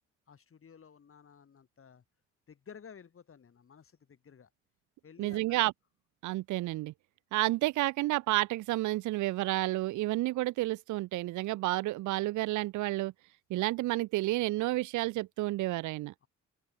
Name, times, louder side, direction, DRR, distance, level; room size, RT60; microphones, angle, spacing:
voice 1, 0.3-2.0 2.5-4.5 5.0-5.6 16.2-16.3, left 7 dB, 45° left, 5.1 m, -54 dB
voice 2, 5.2-5.7 6.2-6.9 7.3-13.1 13.5-16.1, right 18 dB, 75° right, 0.5 m, -30 dB
open air
cardioid pair, 90°, 30 cm